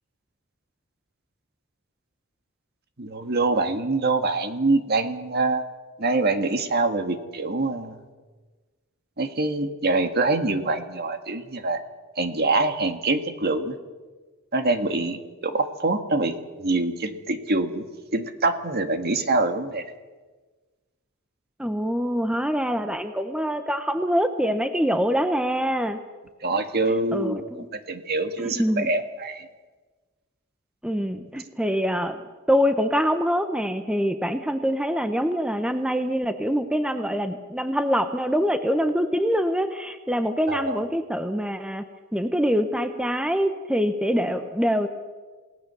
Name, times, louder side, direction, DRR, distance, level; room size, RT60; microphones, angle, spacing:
voice 1, 3.0-5.6 6.0-8.0 9.2-11.8 12.2-13.8 14.5-17.8 18.1-19.8 26.4-27.4 27.9-29.5 40.5-40.8, right 3 dB, 50° right, 7 dB, 1.8 m, -25 dB
voice 2, 21.6-26.0 27.1-27.7 28.4-28.9 30.8-32.2 32.5-41.8 42.1-44.9, equal, 5° right, 8 dB, 1.0 m, -24 dB
28.0 x 18.0 x 7.0 m, 1.3 s
head